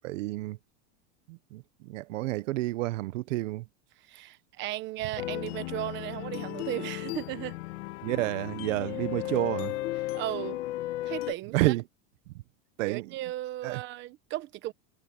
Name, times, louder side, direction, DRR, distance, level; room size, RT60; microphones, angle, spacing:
voice 1, 0.0-0.6 1.3-3.7 8.0-9.7 11.5-11.8 12.8-13.1 13.6-13.8, right 19 dB, 85° right, 0.9 m, -30 dB
voice 2, 4.1-7.5 10.1-10.6 11.0-11.7 12.9-14.7, right 15 dB, 30° right, 1.0 m, -36 dB
sound 1, 5.2-11.3, left 16 dB, 70° left, 2.5 m, -35 dB
supercardioid pair, 170°, 37 cm